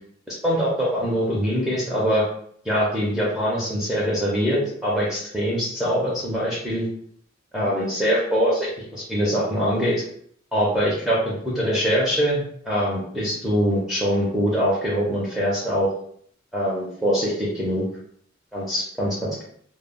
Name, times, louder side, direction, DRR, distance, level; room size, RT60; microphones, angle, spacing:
voice 1, 0.3-2.3 2.6-6.9 7.5-10.0 10.5-15.9 16.5-17.8 18.5-19.4, equal, ahead, -6 dB, 0.5 m, -23 dB
2.0 x 2.0 x 3.5 m, 0.63 s
head